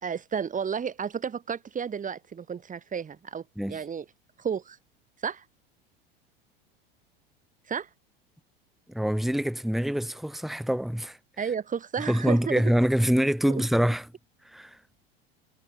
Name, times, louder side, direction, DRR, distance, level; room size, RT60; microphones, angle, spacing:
voice 1, 0.0-4.1 4.4-4.8 5.2-5.4 7.7-7.9 11.4-12.6 13.5-13.6, right 7 dB, 25° right, 5.2 m, -32 dB
voice 2, 8.9-11.2 12.1-14.1 14.4-14.8, equal, ahead, 2.9 m, -25 dB
hypercardioid pair, 85°, 30 cm